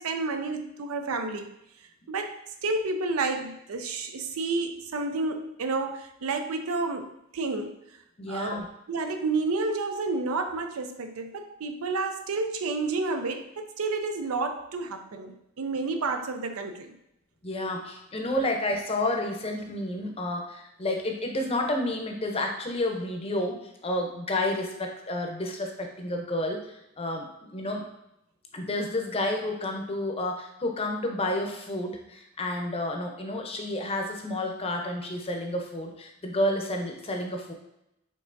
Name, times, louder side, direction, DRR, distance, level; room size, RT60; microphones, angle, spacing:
voice 1, 0.0-1.5 2.1-7.8 8.3-8.6 8.9-16.9, right 3 dB, 85° right, 7 dB, 0.5 m, -30 dB
voice 2, 8.2-8.7 17.4-27.8 28.5-37.5, left 1 dB, 30° left, 2 dB, 0.6 m, -30 dB
5.3 x 3.6 x 2.6 m, 0.82 s
head